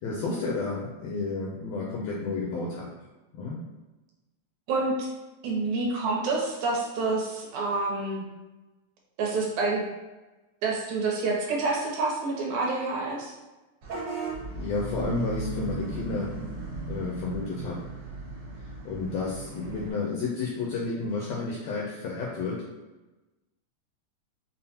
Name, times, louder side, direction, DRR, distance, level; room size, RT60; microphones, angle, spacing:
voice 1, 0.0-2.9 3.3-3.6 14.6-16.3 16.9-17.8 18.8-22.6, left 3 dB, 80° left, -4 dB, 1.5 m, -31 dB
voice 2, 4.7-5.1 5.4-8.2 9.2-9.8 10.6-13.3, right 3 dB, 80° right, -1 dB, 1.9 m, -28 dB
Vehicle horn car horn honking / Bus, 13.8-19.9, right 3 dB, 55° right, 1.7 m, -36 dB
5.3 x 2.1 x 2.8 m, 1.1 s
omnidirectional pair, 3.4 m